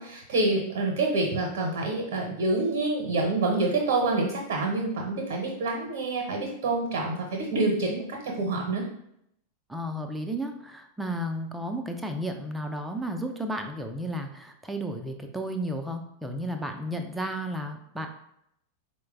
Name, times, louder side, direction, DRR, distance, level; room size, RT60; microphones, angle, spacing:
voice 1, 0.0-8.8, right 2 dB, 50° right, 0 dB, 0.8 m, -27 dB
voice 2, 9.7-18.1, equal, 5° right, 4 dB, 0.5 m, -33 dB
4.4 x 2.1 x 3.6 m, 0.74 s
figure-of-eight pair, 90°, 0 cm